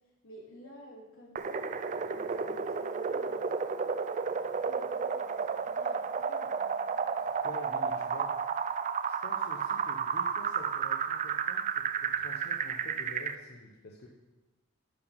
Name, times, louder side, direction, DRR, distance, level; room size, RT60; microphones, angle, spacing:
voice 1, 0.2-1.7 2.1-6.7, equal, 80° left, -5 dB, 2.9 m, -52 dB
sound 1, 1.4-13.4, right 6 dB, 35° right, 0.3 m, -32 dB
voice 2, 7.2-8.4 9.0-14.1, left 1 dB, 50° left, -1 dB, 0.8 m, -48 dB
10.5 x 4.9 x 5.5 m, 1.1 s
head